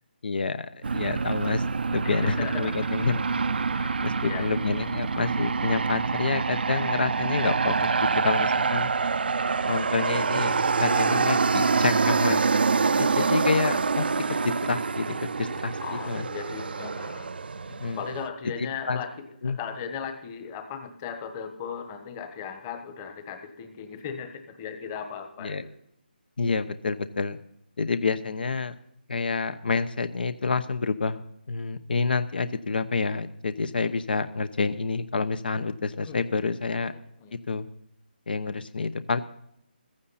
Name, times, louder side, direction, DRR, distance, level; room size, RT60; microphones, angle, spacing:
voice 1, 0.2-3.2 4.0-8.9 9.7-10.5 10.8-12.5 13.0-14.1 14.4-16.2 17.8-18.0 18.6-19.0 19.4-19.6 25.4-25.6 26.4-27.4 27.8-28.7 29.1-31.2 31.5-36.9 37.5-37.7 38.3-39.2, left 4 dB, 65° left, 13 dB, 0.9 m, -28 dB
Aircraft, 0.8-18.3, right 4 dB, 70° right, 0.5 m, -26 dB
voice 2, 2.0-3.1 3.7-4.5 10.5-11.4 15.8-17.3 18.0-25.6 36.0-36.2 36.9-37.3, left 7 dB, 20° left, 7 dB, 1.3 m, -37 dB
15.5 x 14.5 x 4.2 m, 0.73 s
hypercardioid pair, 165°, 5 cm